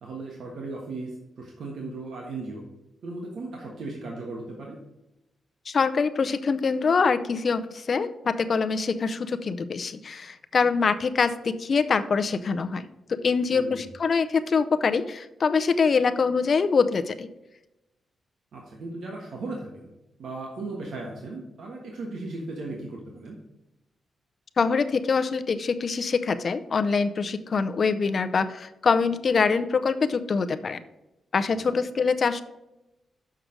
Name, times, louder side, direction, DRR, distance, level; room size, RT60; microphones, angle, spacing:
voice 1, 0.0-2.6 3.0-4.8 13.5-13.8 18.5-19.9 20.2-23.4 31.7-31.8, right 2 dB, 75° right, 0 dB, 1.4 m, -36 dB
voice 2, 5.7-17.3 24.6-30.8 31.3-32.4, left 5 dB, 45° left, 10 dB, 0.6 m, -24 dB
6.5 x 6.1 x 5.1 m, 0.94 s
cardioid pair, 115°, 0 cm